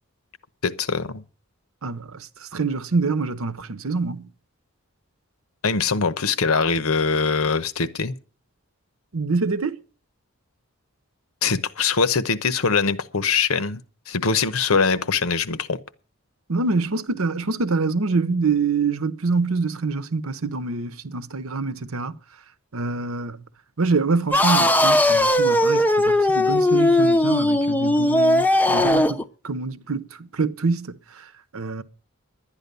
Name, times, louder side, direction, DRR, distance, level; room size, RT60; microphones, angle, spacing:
voice 1, 0.6-1.2 5.6-8.2 11.4-13.8 14.1-15.8, left 5 dB, 75° left, 1.0 m, -22 dB
voice 2, 1.8-4.3 9.1-9.8 16.5-22.2 22.7-23.4 23.8-31.2 31.5-31.8, right 4 dB, 75° right, 0.9 m, -25 dB
sound 1, 24.3-29.2, left 1 dB, 10° left, 0.6 m, -18 dB
11.5 x 10.0 x 6.8 m
head